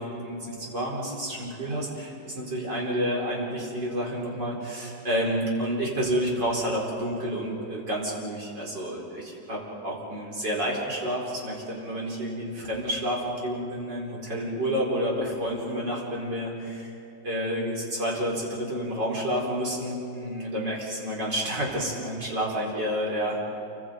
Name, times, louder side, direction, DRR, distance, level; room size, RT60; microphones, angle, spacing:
voice 1, 0.0-16.9 17.2-23.4, equal, 60° right, -3 dB, 5.3 m, -29 dB
28.5 x 25.0 x 5.2 m, 2.6 s
omnidirectional pair, 2.2 m